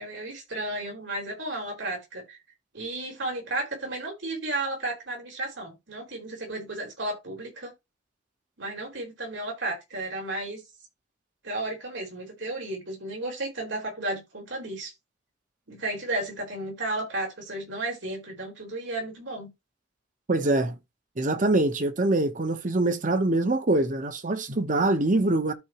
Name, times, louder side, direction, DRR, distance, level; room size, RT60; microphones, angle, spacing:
voice 1, 0.0-2.4 2.7-7.7 8.6-10.6 11.4-14.9 15.7-19.5, right 2 dB, 85° right, 4.2 m, -33 dB
voice 2, 20.3-20.8 21.2-25.5, right 2 dB, 45° right, 0.9 m, -24 dB
13.0 x 4.8 x 2.9 m
head